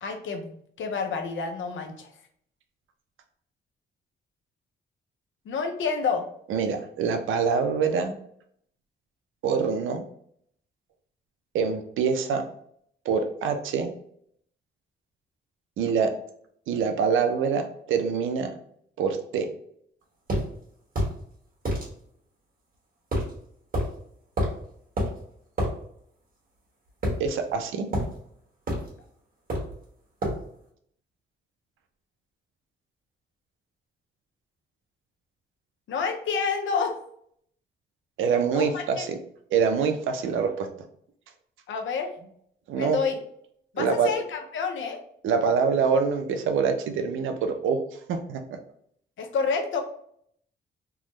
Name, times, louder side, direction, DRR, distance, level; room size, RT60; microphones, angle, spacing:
voice 1, 0.0-2.1 5.5-6.2 35.9-37.0 38.5-39.0 41.7-42.1 42.8-43.2 43.7-45.0 49.2-49.8, left 5 dB, 75° left, 4 dB, 0.5 m, -29 dB
voice 2, 6.5-8.2 9.4-10.0 11.5-12.5 13.1-13.9 15.8-16.1 16.7-18.5 19.0-19.5 27.2-27.9 38.2-39.2 39.5-40.7 42.7-43.0 43.8-44.1 45.2-47.8 48.1-48.6, right 6 dB, 90° right, 6 dB, 0.5 m, -25 dB
sound 1, 20.3-20.5 21.0-21.2 21.7-21.9 23.1-23.3 23.7-23.9 24.4-24.6 25.0-25.1 25.6-25.7 27.0-27.6 27.9-28.1 28.7-28.9 29.5-29.8 30.2-30.4, equal, 45° right, 1.2 m, -27 dB
3.4 x 2.0 x 3.0 m, 0.67 s
cardioid pair, 110°, 20 cm